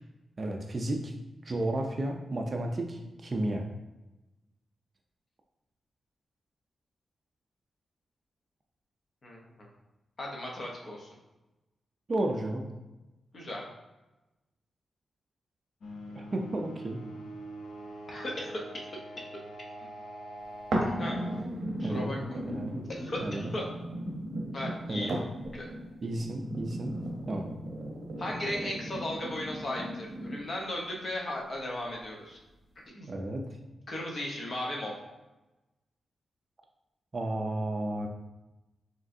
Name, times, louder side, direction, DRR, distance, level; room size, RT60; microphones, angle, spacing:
voice 1, 0.4-1.1 1.4-3.7 12.1-12.6 16.2-17.0 21.8-22.1 22.5-22.7 23.2-23.5 24.9-25.2 26.0-26.9 27.3-27.5 33.1-33.5 37.1-38.1, right 1 dB, 30° right, 2 dB, 0.4 m, -32 dB
voice 2, 9.2-9.7 10.2-11.1 13.3-13.6 18.1-18.9 19.2-19.3 21.0-21.2 21.8-22.4 22.9-23.7 24.5-25.1 25.5-25.7 28.2-32.4 32.9-33.1 33.9-34.9, left 1 dB, 35° left, -1 dB, 0.8 m, -36 dB
sound 1, 15.8-21.4, right 1 dB, 70° left, 0.6 m, -44 dB
sound 2, 20.7-30.7 31.3-31.4, right 1 dB, 55° right, 0.8 m, -36 dB
4.9 x 3.1 x 2.6 m, 1.0 s
wide cardioid pair, 180°, 0 cm